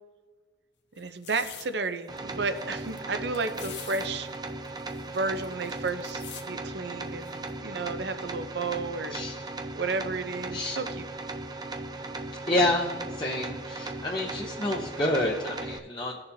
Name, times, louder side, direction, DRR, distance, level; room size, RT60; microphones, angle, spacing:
sound 1, 1.0-1.7 2.2-2.3 2.5-3.0 3.3-4.1 4.3-4.4 4.6-6.4 7.3-7.5, left 9 dB, 80° left, 1.0 m, -44 dB
voice 1, 1.0-4.3 5.1-9.2 9.8-11.0, right 3 dB, 70° right, 10 dB, 0.7 m, -32 dB
sound 2, 2.1-15.8, right 2 dB, 20° right, 0.6 m, -37 dB
voice 2, 9.1-9.5 10.5-10.8 12.3-16.2, left 1 dB, 25° left, -3 dB, 0.8 m, -29 dB
19.0 x 6.8 x 2.7 m, 1.5 s
head